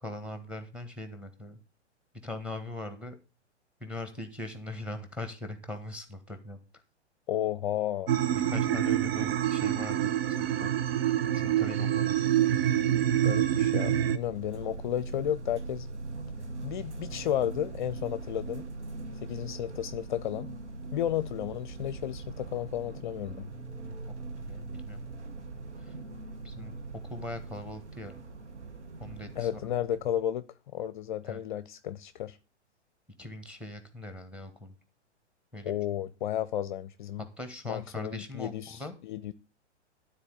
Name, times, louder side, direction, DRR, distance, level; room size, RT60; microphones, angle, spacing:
voice 1, 0.0-1.6 2.2-3.2 3.8-6.6 8.5-10.1 10.4-10.7 11.3-12.2 23.8-23.9 24.5-25.0 25.8-25.9 26.4-26.8 27.1-28.1 29.0-29.6 31.2-31.4 33.2-34.7 35.5-35.7 37.4-38.9, left 1 dB, 5° right, 1.6 m, -40 dB
voice 2, 7.3-8.1 13.2-15.9 16.6-18.6 19.2-20.5 20.9-23.5 29.4-30.5 30.7-32.4 35.6-37.3 37.7-39.3, left 11 dB, 45° left, 0.6 m, -33 dB
sound 1, 8.1-14.2, right 11 dB, 55° right, 0.9 m, -26 dB
sound 2, 13.6-30.2, right 3 dB, 75° right, 1.5 m, -41 dB
12.5 x 4.2 x 8.1 m
figure-of-eight pair, 110°, 35 cm